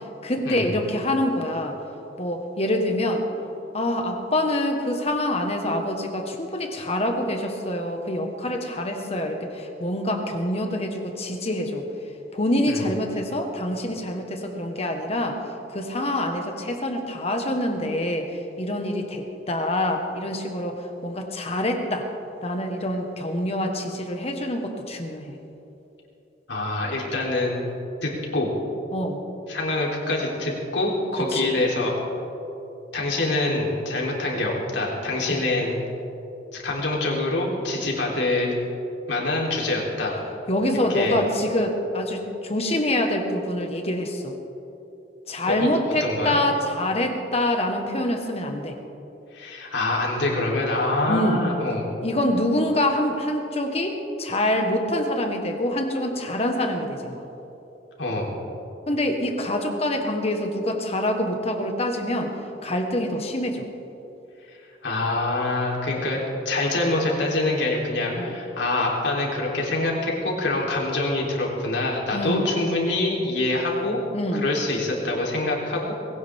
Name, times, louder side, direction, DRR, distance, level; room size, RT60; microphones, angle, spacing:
voice 1, 0.2-1.8 2.2-3.2 3.7-11.9 12.3-15.4 15.7-22.0 22.4-25.4 28.9-29.2 31.3-31.5 35.3-35.4 40.5-44.4 45.3-48.8 51.1-51.4 52.0-57.2 58.9-62.3 62.6-63.7 68.2-68.4 72.1-72.5 74.1-74.5, left 1 dB, 35° left, 4 dB, 1.5 m, -26 dB
voice 2, 26.5-27.6 28.0-28.5 29.5-32.0 32.9-35.7 36.5-38.5 39.1-40.1 40.9-41.2 45.5-45.7 46.0-46.4 49.3-51.9 58.0-58.3 64.8-74.0 74.3-75.9, left 2 dB, 85° left, -2 dB, 3.7 m, -25 dB
20.5 x 18.0 x 3.7 m, 3.0 s
head